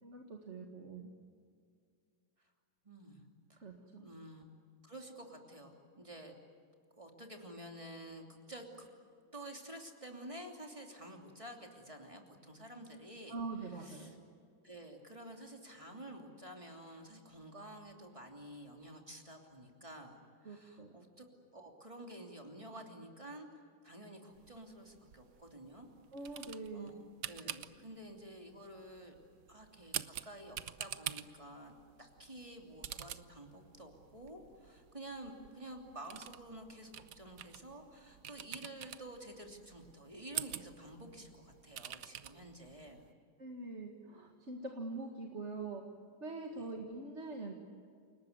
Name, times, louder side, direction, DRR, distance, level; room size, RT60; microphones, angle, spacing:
voice 1, 0.0-1.1 3.6-4.1 13.3-14.2 20.4-20.9 26.1-26.9 43.4-45.9 46.2-47.5, right 3 dB, 35° right, 2 dB, 2.1 m, -44 dB
voice 2, 2.8-3.2 3.5-3.6 4.0-4.4 4.8-6.3 6.9-8.9 9.3-13.3 13.8-14.1 14.6-21.3 21.5-25.9 26.7-29.2 29.5-31.7 32.0-43.1 46.5-46.6, right 1 dB, 15° right, 2 dB, 3.0 m, -50 dB
sound 1, 24.3-43.1, right 11 dB, 65° right, 1.3 m, -48 dB
29.5 x 19.5 x 9.5 m, 2.2 s
omnidirectional pair, 2.1 m